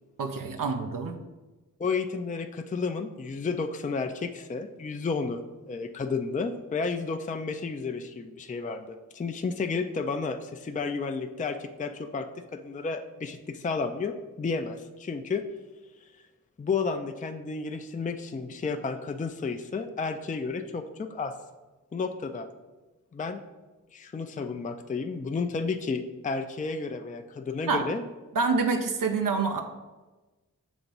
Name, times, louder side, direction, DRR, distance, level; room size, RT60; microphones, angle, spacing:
voice 1, 0.2-1.2 27.7-27.8 28.3-29.6, right 4 dB, 90° right, 4 dB, 0.5 m, -27 dB
voice 2, 1.8-15.4 16.6-21.4 21.9-22.5 23.1-23.4 23.9-28.0, left 4 dB, 25° left, 7 dB, 0.4 m, -32 dB
7.0 x 2.9 x 5.3 m, 1.2 s
wide cardioid pair, 60°, 32 cm